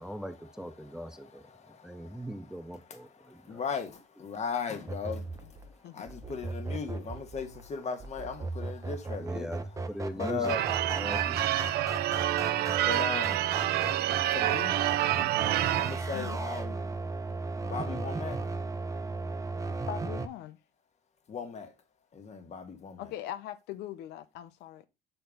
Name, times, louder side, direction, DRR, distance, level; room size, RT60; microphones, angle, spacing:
voice 1, 0.0-3.6 9.2-10.6 10.9-11.5, equal, 5° right, 0.5 m, -41 dB
voice 2, 0.8-10.7 11.7-16.9 17.6-18.5 21.3-21.7 22.1-23.1, left 5 dB, 40° left, 1.6 m, -39 dB
sound 1, 4.9-20.3, right 3 dB, 20° right, 0.9 m, -36 dB
Church bell / Car / Alarm, 10.5-16.0, right 14 dB, 70° right, 0.5 m, -28 dB
voice 3, 19.9-20.6 23.0-24.8, left 12 dB, 85° left, 0.7 m, -40 dB
6.7 x 4.3 x 5.2 m
cardioid pair, 110°, 17 cm